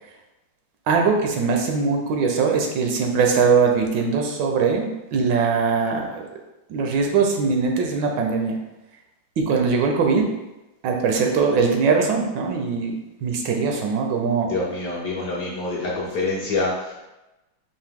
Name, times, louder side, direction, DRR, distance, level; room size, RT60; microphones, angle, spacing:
voice 1, 0.9-6.3 6.7-8.6 9.4-10.3 10.8-12.9 13.2-14.5, right 5 dB, 75° right, 2 dB, 1.2 m, -21 dB
voice 2, 14.4-17.0, left 3 dB, 60° left, -4 dB, 1.1 m, -26 dB
4.6 x 2.7 x 3.5 m, 1.0 s
omnidirectional pair, 2.1 m